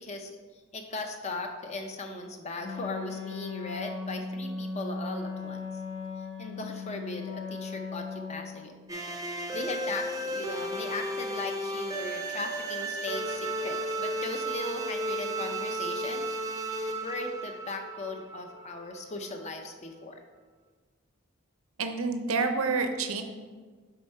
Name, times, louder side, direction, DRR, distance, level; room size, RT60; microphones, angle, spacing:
voice 1, 0.0-5.7 6.4-8.8 9.3-16.3 16.8-20.2, left 2 dB, 30° left, 4 dB, 0.5 m, -38 dB
Wind instrument woodwind instrument, 2.6-8.7, left 4 dB, 55° left, 1.7 m, -37 dB
sound 1, 8.9-18.8, right 1 dB, 15° right, 0.5 m, -34 dB
voice 2, 21.8-23.2, right 4 dB, 70° right, 6 dB, 0.6 m, -28 dB
6.7 x 4.4 x 4.3 m, 1.5 s
head